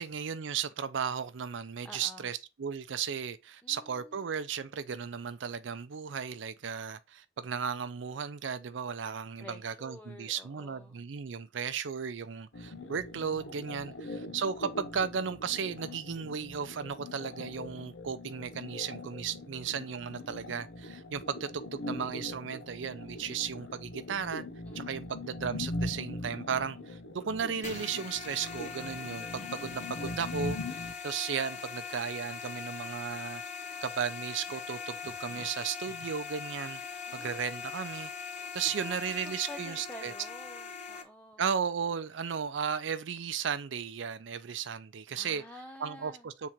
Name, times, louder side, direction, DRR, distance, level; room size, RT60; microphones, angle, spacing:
voice 1, 0.0-24.4 24.7-33.4 33.8-36.8 37.1-38.1 38.5-40.1 41.4-45.4 45.8-46.5, right 7 dB, 70° right, 0.5 m, -35 dB
voice 2, 1.8-2.3 3.6-4.3 9.4-11.0 13.9-14.4 24.7-25.1 37.1-37.9 38.8-39.0 39.2-41.4 45.1-46.3, left 1 dB, 5° left, 0.5 m, -50 dB
sound 1, 12.5-30.9, left 2 dB, 80° left, 0.8 m, -41 dB
sound 2, 27.6-41.0, left 6 dB, 40° left, 1.0 m, -41 dB
7.2 x 3.7 x 4.5 m
head